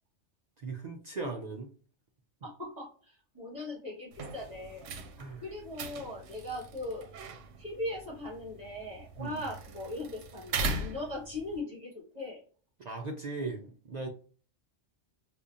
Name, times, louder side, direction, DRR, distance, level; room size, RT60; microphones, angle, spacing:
voice 1, 0.6-1.7 5.2-5.4 9.2-9.5 12.8-14.1, right 3 dB, 60° right, 3 dB, 0.4 m, -38 dB
voice 2, 2.4-4.9 5.4-7.1 7.6-12.4, left 1 dB, 35° right, -4 dB, 1.9 m, -39 dB
sound 1, 4.1-11.6, right 3 dB, 85° right, 1.0 m, -40 dB
5.1 x 2.4 x 2.4 m, 0.41 s
omnidirectional pair, 1.2 m